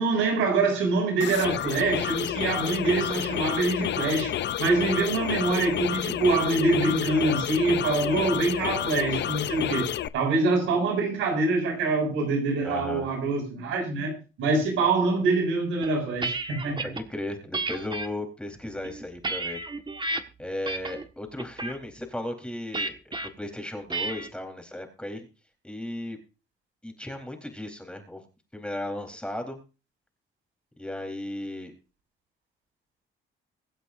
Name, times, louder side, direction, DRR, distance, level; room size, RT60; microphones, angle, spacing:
voice 1, 0.0-4.3 4.6-16.9, right 3 dB, 90° right, 6.6 m, -25 dB
sound 1, 1.2-10.1, left 11 dB, 60° left, 0.7 m, -30 dB
voice 2, 12.6-13.1 16.8-19.6 20.0-20.1 20.4-25.3 25.6-26.2 26.8-28.2 28.5-29.6 30.8-31.7, left 1 dB, 5° left, 4.0 m, -35 dB
sound 2, 15.8-17.0 17.5-18.1 18.7-20.2 20.7-21.1 21.4-21.8 22.7-23.3 23.9-24.3, right 3 dB, 25° right, 1.6 m, -32 dB
24.0 x 8.1 x 2.7 m
cardioid pair, 90°, 20 cm